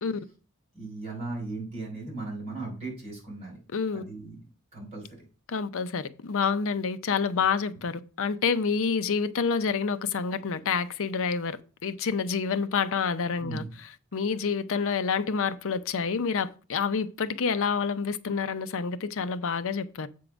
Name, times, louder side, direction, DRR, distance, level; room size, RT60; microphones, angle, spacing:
voice 1, 0.7-3.6 3.9-4.4 4.7-5.1 13.4-13.7, right 3 dB, 30° right, 4.9 m, -37 dB
voice 2, 3.7-4.0 5.5-13.6 14.1-20.1, left 5 dB, 65° left, 0.6 m, -28 dB
7.7 x 3.7 x 6.1 m
head